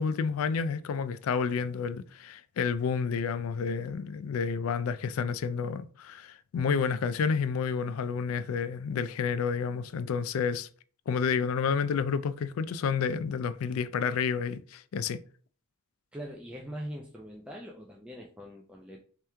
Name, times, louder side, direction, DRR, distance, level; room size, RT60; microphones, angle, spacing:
voice 1, 0.0-10.7 11.1-15.2, left 6 dB, 85° left, 0.3 m, -30 dB
voice 2, 16.1-19.0, equal, 5° right, 0.4 m, -42 dB
3.4 x 3.0 x 3.3 m
head